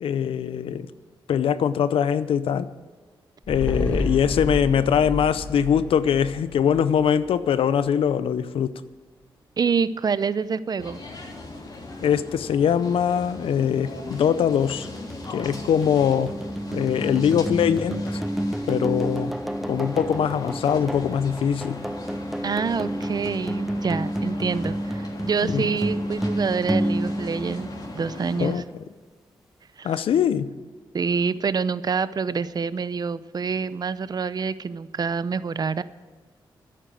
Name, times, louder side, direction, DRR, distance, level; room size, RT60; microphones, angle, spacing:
voice 1, 0.0-0.9 1.3-2.7 3.5-8.7 12.0-14.9 15.3-16.3 16.7-18.0 18.7-19.3 19.7-21.8 25.4-25.7 28.4-28.6 29.8-30.5, left 8 dB, 85° left, 14 dB, 0.6 m, -22 dB
sound 1, 3.4-8.0 8.3-8.4, left 1 dB, 15° left, 2.1 m, -31 dB
voice 2, 9.6-11.0 22.4-27.7 27.9-28.6 29.8-30.0 30.9-35.8, right 5 dB, 45° right, 16 dB, 0.6 m, -26 dB
sound 2, 10.8-28.5, left 2 dB, 50° left, 3.3 m, -39 dB
sound 3, 14.1-28.3, equal, ahead, 0.3 m, -30 dB
11.0 x 8.9 x 9.2 m, 1.4 s
cardioid pair, 70°, 9 cm